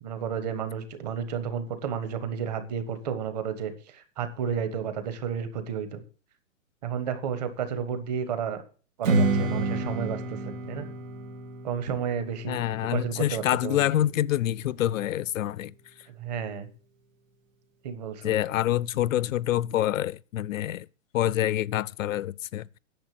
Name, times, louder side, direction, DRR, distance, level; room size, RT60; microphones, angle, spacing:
voice 1, 0.0-6.0 6.8-8.6 9.0-10.9 11.6-12.6 12.9-13.9 16.1-16.7 17.8-18.3, right 7 dB, 30° right, 1.4 m, -32 dB
Strum, 9.0-14.3, right 3 dB, 85° right, 2.8 m, -30 dB
voice 2, 12.5-15.7 18.2-20.9 21.1-22.8, left 13 dB, 85° left, 0.6 m, -26 dB
10.5 x 6.7 x 7.8 m
hypercardioid pair, 175°, 39 cm